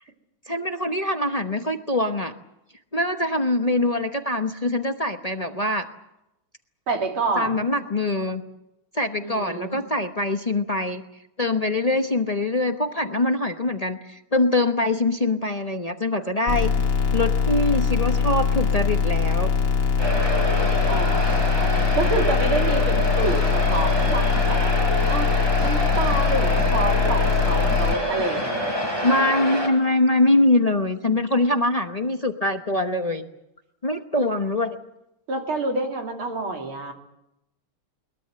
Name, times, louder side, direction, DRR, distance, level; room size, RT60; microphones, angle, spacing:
voice 1, 0.5-2.3 2.9-5.9 7.3-8.4 8.9-11.0 11.4-16.7 17.1-19.5 29.0-33.2 33.8-34.8, left 2 dB, 35° left, 5 dB, 0.6 m, -23 dB
voice 2, 6.9-7.6 9.2-9.8 20.9-24.7 25.1-25.3 25.6-28.7 35.3-36.9, right 3 dB, 70° right, 2 dB, 3.7 m, -28 dB
sound 1, 16.5-27.9, left 6 dB, 50° left, 2.3 m, -22 dB
sound 2, 20.0-29.7, equal, 10° right, 5.0 m, -26 dB
22.0 x 21.5 x 7.8 m, 0.87 s
omnidirectional pair, 2.4 m